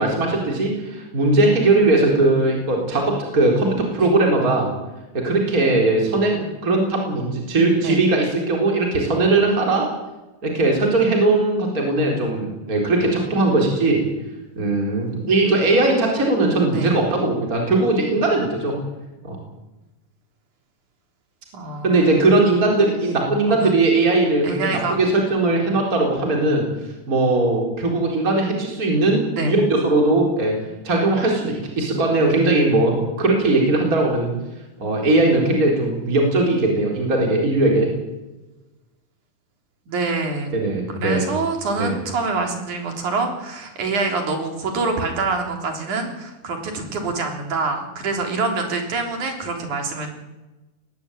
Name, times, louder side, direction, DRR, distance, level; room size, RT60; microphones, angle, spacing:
voice 1, 0.0-4.7 5.1-9.9 10.4-14.0 14.6-18.8 19.2-19.4 21.8-26.6 27.1-30.5 30.8-34.3 34.8-37.9 40.5-41.2 41.8-41.9, right 2 dB, 25° right, 0 dB, 4.4 m, -19 dB
voice 2, 21.5-22.3 23.5-23.7 24.4-24.9 29.4-29.5 39.9-40.5 40.9-50.1, right 3 dB, 70° right, 3 dB, 5.0 m, -26 dB
20.0 x 16.0 x 9.2 m, 1.1 s
omnidirectional pair, 3.6 m